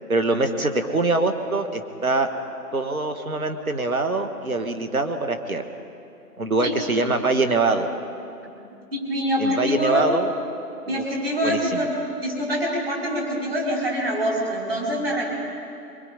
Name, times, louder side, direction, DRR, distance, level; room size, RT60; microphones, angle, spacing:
voice 1, 0.1-2.3 2.7-5.6 6.4-7.9 9.4-10.3 10.9-11.0 11.4-11.6, right 2 dB, 60° right, 6 dB, 1.9 m, -23 dB
voice 2, 8.9-10.1 10.9-11.9 12.2-15.3, equal, 35° right, -3 dB, 4.8 m, -25 dB
24.0 x 21.5 x 5.2 m, 2.7 s
figure-of-eight pair, 175°, 48 cm